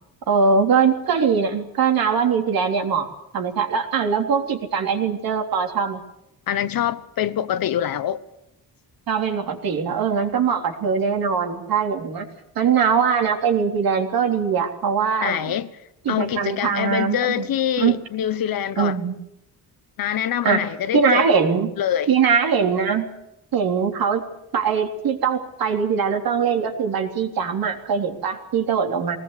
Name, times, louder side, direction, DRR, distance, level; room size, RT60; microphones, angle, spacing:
voice 1, 0.3-3.1 3.3-6.0 9.1-12.3 12.6-15.5 16.1-17.5 17.8-18.0 18.8-19.2 20.4-20.7 20.9-21.7 22.1-23.1 23.5-24.2 24.5-29.2, right 6 dB, 65° right, 3.6 m, -21 dB
voice 2, 6.5-8.2 15.2-15.7 16.1-19.0 20.0-21.3 21.8-22.1, left 10 dB, 65° left, 1.2 m, -24 dB
21.5 x 19.0 x 8.4 m
cardioid pair, 140°, 37 cm